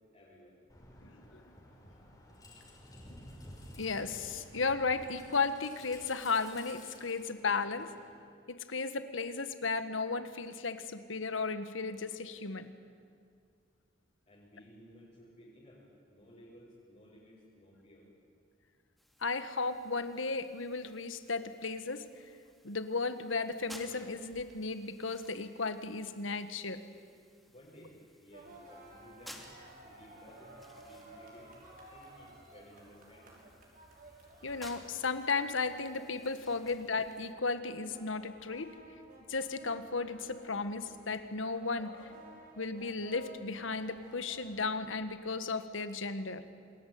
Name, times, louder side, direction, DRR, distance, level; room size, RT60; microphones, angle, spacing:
voice 1, 0.1-0.6 14.3-18.1 27.5-29.4 29.8-31.5 31.9-33.4, equal, 40° left, -7 dB, 6.4 m, -57 dB
sound 1, 0.7-8.1, left 1 dB, 20° left, 5.4 m, -53 dB
voice 2, 1.0-1.4 3.8-7.9 8.5-12.7 19.2-22.0 22.6-26.8 34.4-38.7 39.3-42.1 42.6-46.4, left 4 dB, 85° left, 10 dB, 1.6 m, -35 dB
sound 2, 19.0-37.3, equal, ahead, 2.7 m, -58 dB
sound 3, 28.3-45.2, right 1 dB, 50° right, 6.1 m, -55 dB
28.0 x 20.5 x 9.5 m, 2.2 s
head